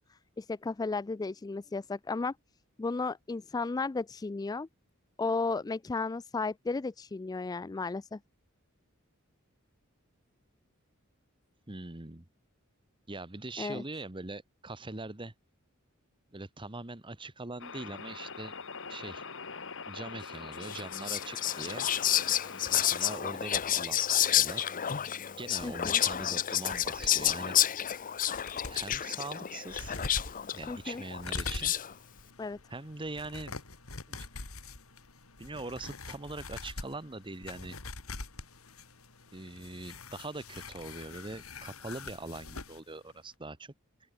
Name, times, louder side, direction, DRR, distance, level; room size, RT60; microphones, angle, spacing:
voice 1, 0.1-2.3 2.8-4.7 5.2-8.2 13.6-13.8 25.6-26.0 30.7-31.0 32.4-32.6, left 3 dB, 20° left, 0.3 m, -34 dB
voice 2, 11.7-12.2 13.1-15.3 16.3-18.5 18.9-19.2 19.9-21.9 22.7-24.6 25.4-27.6 28.7-30.0 30.5-31.7 32.7-33.5 34.1-34.2 35.4-37.8 39.3-43.7, right 2 dB, 25° right, 1.3 m, -42 dB
sound 1, 17.6-23.2, left 5 dB, 65° left, 4.0 m, -43 dB
Whispering, 20.6-31.9, left 11 dB, 40° left, 0.7 m, -30 dB
sound 2, 26.7-27.3 27.9-28.0 28.2-29.1 29.7-42.8 43.1-43.2, left 3 dB, 90° left, 3.4 m, -44 dB
open air
head